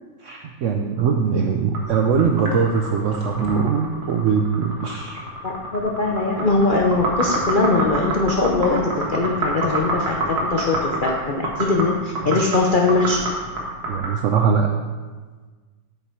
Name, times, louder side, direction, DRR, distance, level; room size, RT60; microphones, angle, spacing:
voice 1, 0.2-5.2 12.2-12.4 13.9-14.7, right 6 dB, 80° right, 4 dB, 0.6 m, -21 dB
sound 1, 1.7-14.2, right 2 dB, 60° right, 2.1 m, -27 dB
voice 2, 5.4-10.2 10.5-13.2, left 3 dB, 75° left, 0 dB, 0.4 m, -21 dB
8.1 x 5.8 x 4.5 m, 1.4 s
omnidirectional pair, 2.0 m